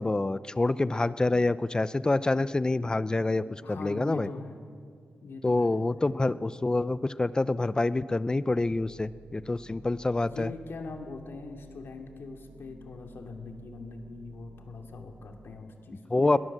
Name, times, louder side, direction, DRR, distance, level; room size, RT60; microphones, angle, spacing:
voice 1, 0.0-4.3 5.4-10.5 16.1-16.4, left 2 dB, 20° left, 16 dB, 0.6 m, -27 dB
voice 2, 3.4-4.6 5.2-5.8 10.2-16.4, left 3 dB, 70° left, 4 dB, 2.6 m, -42 dB
sound 1, 8.6-15.6, right 3 dB, 35° right, 3.0 m, -53 dB
22.0 x 19.0 x 7.5 m, 2.2 s
wide cardioid pair, 110°, 4 cm